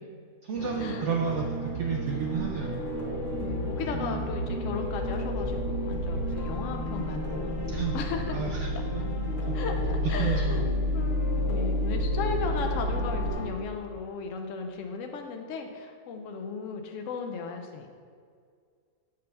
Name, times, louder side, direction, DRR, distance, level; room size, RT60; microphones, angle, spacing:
voice 1, 0.4-2.8 7.7-8.0 8.3-8.7 8.9-9.0 9.4-9.6 10.2-10.6, right 6 dB, 75° right, 1 dB, 0.6 m, -31 dB
sound 1, 0.5-13.5, right 1 dB, 50° left, 1.4 m, -34 dB
sound 2, 2.3-13.3, left 2 dB, 90° left, 1.2 m, -32 dB
voice 2, 3.4-7.6 7.9-8.4 9.5-10.7 10.9-17.9, left 5 dB, 70° left, 4 dB, 0.7 m, -36 dB
6.7 x 5.2 x 3.3 m, 2.1 s
omnidirectional pair, 1.8 m